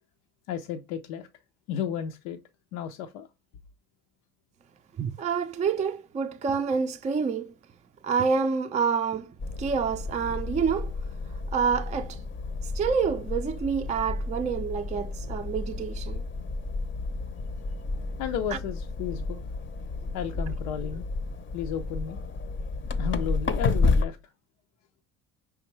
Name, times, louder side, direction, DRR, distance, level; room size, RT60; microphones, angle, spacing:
voice 1, 0.5-1.3 1.7-2.4 2.7-3.3 18.2-19.4 20.1-21.1 21.5-22.2 23.0-24.2, left 8 dB, 85° left, 0.5 m, -33 dB
voice 2, 5.0-7.5 8.0-10.9 11.5-12.2 12.7-16.2 18.5-18.6, right 6 dB, 20° right, 0.4 m, -28 dB
sound 1, 9.4-24.1, left 3 dB, 35° left, 0.6 m, -31 dB
5.1 x 3.5 x 3.0 m
supercardioid pair, 80°, 33 cm